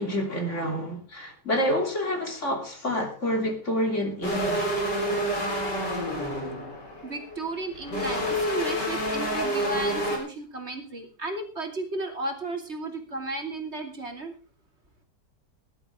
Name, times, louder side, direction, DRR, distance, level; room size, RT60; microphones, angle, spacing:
voice 1, 0.0-4.7, equal, 40° left, 3.6 m, -28 dB
sound 1, 4.2-10.2, equal, 75° left, 4.7 m, -28 dB
voice 2, 7.0-14.3, right 2 dB, 40° right, 3.0 m, -34 dB
19.0 x 12.0 x 3.7 m
omnidirectional pair, 1.9 m